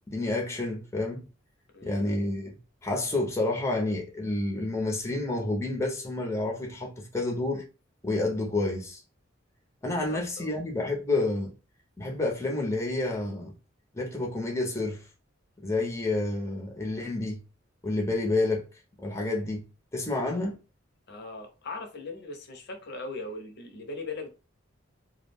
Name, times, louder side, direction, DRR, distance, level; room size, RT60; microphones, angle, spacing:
voice 1, 0.1-1.3 1.8-2.5 2.8-7.6 8.0-9.0 9.8-11.5 12.0-13.5 13.9-15.0 15.6-17.4 17.8-18.7 19.0-19.6 19.9-20.6, left 2 dB, 15° left, 0.6 m, -29 dB
voice 2, 10.1-10.6 21.1-24.3, left 3 dB, 55° left, 0.6 m, -39 dB
2.3 x 2.0 x 3.3 m
head